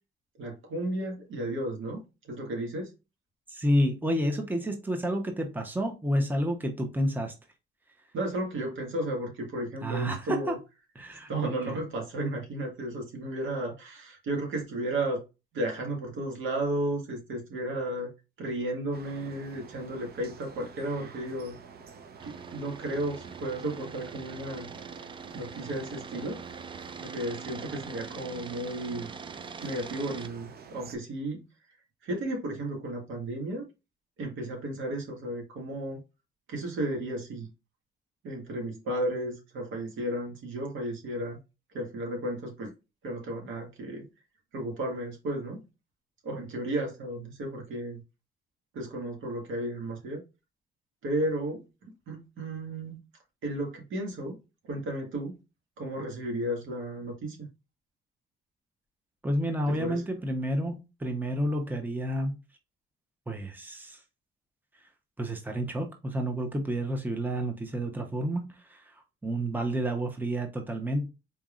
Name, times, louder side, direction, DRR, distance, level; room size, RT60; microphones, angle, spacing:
voice 1, 0.4-2.9 8.1-10.6 11.3-15.2 15.5-18.1 18.4-21.6 22.2-24.7 25.0-25.1 25.3-26.4 27.0-29.1 29.6-31.5 32.0-33.6 34.2-36.0 36.5-37.5 38.2-41.4 41.7-42.7 43.0-44.1 44.5-45.7 46.2-48.0 48.7-50.2 51.0-53.0 53.4-54.4 54.6-55.4 55.8-57.5 59.7-60.0, right 1 dB, 80° right, 1.8 m, -33 dB
voice 2, 3.5-7.3 9.8-10.6 11.0-11.8 59.2-62.4 63.3-64.0 65.2-71.1, equal, 10° right, 0.9 m, -30 dB
sound 1, 18.9-31.0, right 5 dB, 50° right, 0.8 m, -49 dB
sound 2, 22.2-30.3, right 5 dB, 25° right, 0.4 m, -43 dB
4.2 x 3.4 x 2.5 m
cardioid pair, 90°, 20 cm